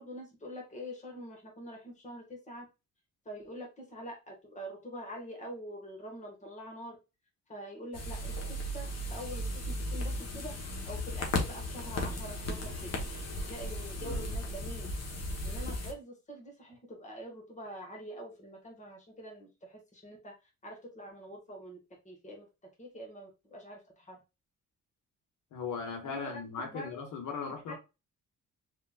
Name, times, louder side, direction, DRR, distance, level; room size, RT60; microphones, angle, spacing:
voice 1, 0.0-2.6 3.3-7.0 7.5-8.4 8.7-10.6 10.9-12.9 13.5-14.9 15.4-20.3 20.6-21.8 22.1-22.5 22.8-24.2 26.0-26.9 27.7-27.8, equal, 25° left, 1.9 m, -45 dB
sound 1, 7.9-15.9, left 1 dB, 55° left, 1.5 m, -36 dB
voice 2, 25.5-27.7, left 5 dB, 80° left, 1.6 m, -38 dB
4.3 x 3.6 x 2.5 m
cardioid pair, 90°, 30 cm